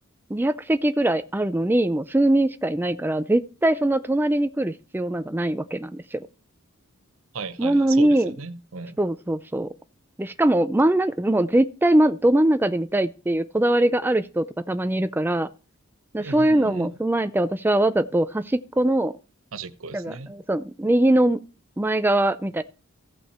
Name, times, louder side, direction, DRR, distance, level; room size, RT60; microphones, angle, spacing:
voice 1, 0.3-6.3 7.6-8.3 9.0-9.7 10.2-15.5 16.1-19.1 19.9-21.4 21.8-22.6, right 1 dB, 10° right, 0.4 m, -22 dB
voice 2, 7.3-9.0 16.2-16.9 19.5-20.3, right 4 dB, 70° right, 0.8 m, -36 dB
15.5 x 5.7 x 4.3 m
head